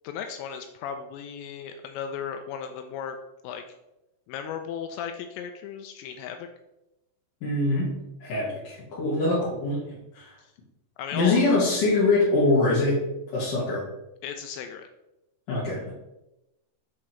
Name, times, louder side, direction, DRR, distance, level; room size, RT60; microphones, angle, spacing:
voice 1, 0.0-3.2 3.4-3.6 4.3-6.5 10.4-10.5 11.0-11.4 14.2-14.9, left 7 dB, 85° left, 6 dB, 2.5 m, -35 dB
voice 2, 7.4-7.9 8.2-10.4 11.1-13.0 13.3-13.8 15.5-15.9, left 2 dB, 60° left, -9 dB, 2.6 m, -24 dB
7.9 x 3.7 x 4.4 m, 0.93 s
omnidirectional pair, 5.5 m